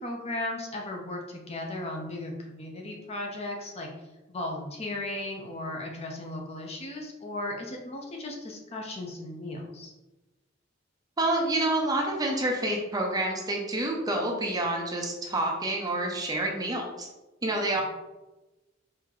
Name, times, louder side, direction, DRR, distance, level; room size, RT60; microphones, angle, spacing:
voice 1, 0.0-3.9 4.3-9.9, left 1 dB, 30° left, 0 dB, 0.7 m, -36 dB
voice 2, 11.2-17.1 17.4-17.8, right 1 dB, 20° right, 0 dB, 0.6 m, -28 dB
4.7 x 2.8 x 3.7 m, 1.1 s
head